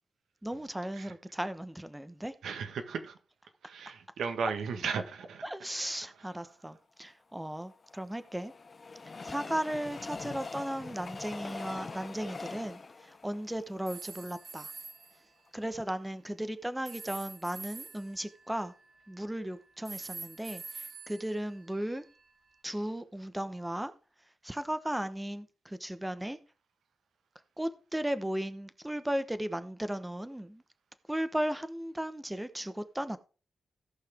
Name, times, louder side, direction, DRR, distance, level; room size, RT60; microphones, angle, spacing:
voice 1, 0.4-2.3 5.4-8.5 9.2-12.8 13.2-14.7 15.5-18.7 19.1-20.6 21.1-22.0 22.6-23.9 24.4-26.4 27.6-30.6 31.1-33.2, right 1 dB, 10° right, 1.0 m, -36 dB
voice 2, 2.4-3.1 3.6-5.7 6.2-6.4, right 5 dB, 90° right, 1.5 m, -36 dB
Train, 7.4-14.7 15.2-15.3 15.5-15.6, left 4 dB, 40° left, 0.8 m, -44 dB
sound 1, 13.9-15.2 16.9-19.3 19.8-22.2, right 5 dB, 60° right, 2.2 m, -46 dB
17.0 x 5.7 x 3.6 m
cardioid pair, 75°, 0 cm